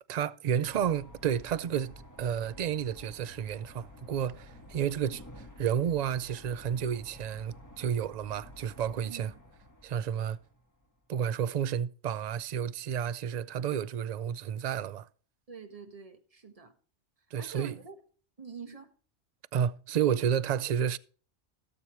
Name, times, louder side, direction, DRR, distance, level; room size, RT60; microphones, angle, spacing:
voice 1, 0.1-9.3 9.8-10.4 11.1-15.1 17.3-17.8 19.5-21.0, right 8 dB, 55° right, 0.5 m, -31 dB
sound 1, 0.6-10.9, left 1 dB, 15° left, 1.7 m, -51 dB
voice 2, 15.5-16.7 17.4-18.0 18.4-18.9, right 5 dB, 30° right, 1.4 m, -46 dB
17.5 x 7.0 x 3.1 m
omnidirectional pair, 1.2 m